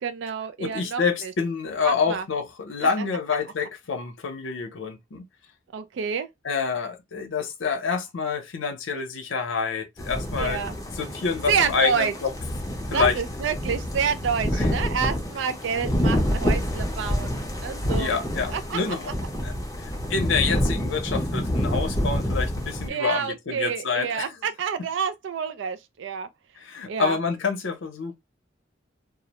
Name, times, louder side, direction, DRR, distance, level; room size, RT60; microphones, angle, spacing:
voice 1, 0.0-1.3 1.9-2.2 5.7-6.3 10.4-10.8 11.5-12.1 12.9-18.2 18.5-18.8 19.1-19.2 22.9-26.3 26.9-27.2, right 6 dB, 70° right, 0.3 m, -28 dB
voice 2, 0.6-5.2 6.4-10.6 11.0-12.3 12.9-13.2 14.5-14.7 17.9-19.1 19.4-19.5 19.8-24.4 26.6-28.1, left 5 dB, 80° left, 0.6 m, -27 dB
sound 1, 10.0-22.9, equal, 20° left, 0.5 m, -27 dB
2.4 x 2.0 x 2.8 m
head